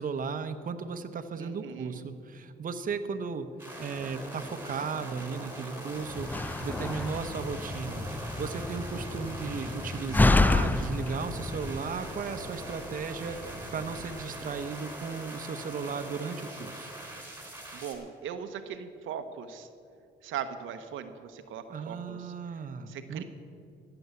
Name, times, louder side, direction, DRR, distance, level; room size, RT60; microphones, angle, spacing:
voice 1, 0.0-3.5 3.8-6.3 6.6-16.9 21.7-23.2, right 5 dB, 45° right, 8 dB, 0.9 m, -36 dB
voice 2, 1.4-2.1 17.7-19.7 20.2-22.3 22.9-23.2, right 8 dB, 80° right, 8 dB, 0.8 m, -39 dB
sound 1, 3.6-18.0, right 1 dB, 10° right, 3.5 m, -42 dB
sound 2, 5.9-14.3, equal, 75° left, 2.8 m, -47 dB
Slam, 6.2-11.8, left 2 dB, 10° left, 0.3 m, -28 dB
15.0 x 6.9 x 8.2 m, 2.4 s
cardioid pair, 90°, 20 cm